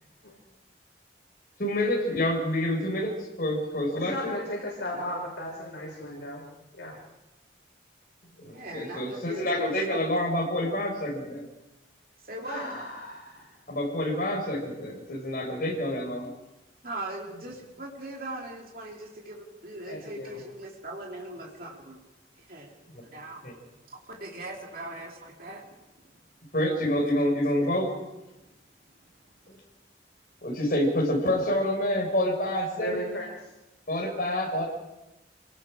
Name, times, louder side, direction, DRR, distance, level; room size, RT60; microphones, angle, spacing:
voice 1, 1.6-3.1 3.4-4.4 8.4-11.4 13.7-16.3 22.9-23.0 23.4-23.5 26.5-27.9 29.5-29.6 30.4-33.1 33.9-34.7, left 1 dB, 50° left, 0 dB, 5.7 m, -27 dB
voice 2, 4.1-6.4 6.8-7.0 12.5-13.5 19.9-20.4 32.7-33.3, left 1 dB, 75° left, -3 dB, 5.9 m, -36 dB
voice 3, 8.5-10.0 10.6-10.8 12.2-12.7 16.8-22.0 22.4-22.7 23.0-23.4 23.9-25.6, right 2 dB, 50° right, -1 dB, 2.9 m, -40 dB
27.5 x 19.0 x 5.0 m, 0.99 s
head